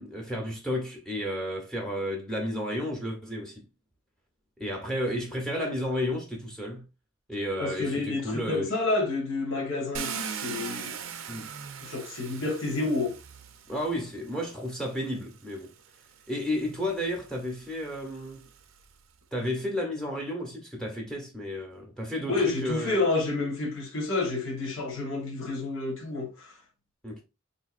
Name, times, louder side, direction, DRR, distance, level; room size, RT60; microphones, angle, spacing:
voice 1, 0.0-3.6 4.6-6.8 7.3-8.7 11.3-11.5 13.7-15.7 16.3-18.4 19.3-23.0 27.0-27.2, left 1 dB, 5° left, 0.7 m, -32 dB
voice 2, 7.6-11.0 11.8-13.1 22.3-26.6, left 3 dB, 70° left, 1.1 m, -29 dB
Car, 9.9-14.0 15.0-15.1 15.6-18.9, right 7 dB, 75° right, 0.5 m, -40 dB
3.9 x 2.7 x 2.4 m
head